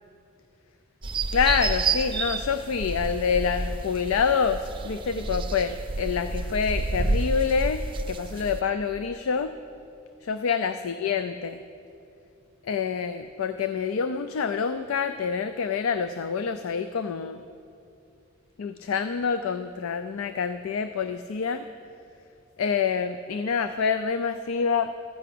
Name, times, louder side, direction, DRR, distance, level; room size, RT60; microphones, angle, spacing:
sound 1, 1.0-8.6, right 3 dB, 25° right, 0.5 m, -29 dB
voice 1, 1.3-9.5 10.2-11.6 12.6-17.4 18.6-21.6 22.6-24.9, left 6 dB, 75° left, 10 dB, 0.4 m, -27 dB
13.0 x 5.9 x 8.4 m, 2.6 s
head